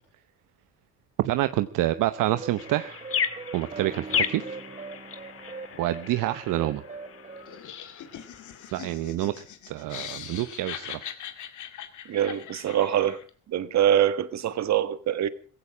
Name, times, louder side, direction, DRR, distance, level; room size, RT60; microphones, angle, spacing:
voice 1, 1.2-3.0 3.5-4.6 5.8-6.8 8.7-9.3 9.7-11.0, right 15 dB, 70° right, 0.9 m, -27 dB
sound 1, 2.1-7.6, right 4 dB, 20° right, 0.9 m, -41 dB
sound 2, 2.6-8.8, left 7 dB, 45° left, 1.9 m, -34 dB
Laughter, 7.5-13.3, left 10 dB, 60° left, 2.4 m, -41 dB
voice 2, 12.1-13.2 13.5-15.3, right 10 dB, 55° right, 1.5 m, -24 dB
17.0 x 16.0 x 4.9 m
cardioid pair, 105°, 33 cm